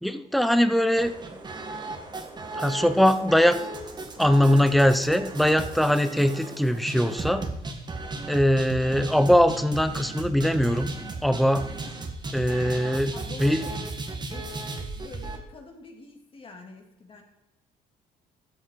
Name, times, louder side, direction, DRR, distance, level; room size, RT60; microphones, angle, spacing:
voice 1, 0.0-1.4 2.5-3.6 4.2-7.5 8.3-10.9 11.2-11.7 12.3-13.1 13.4-13.6, equal, ahead, 11 dB, 0.8 m, -21 dB
sound 1, 1.0-15.4, right 2 dB, 25° right, 1.8 m, -36 dB
voice 2, 13.1-13.8 14.3-14.5 14.9-17.2, left 3 dB, 30° left, 3 dB, 2.6 m, -46 dB
13.5 x 7.2 x 4.7 m, 0.95 s
cardioid pair, 110°, 17 cm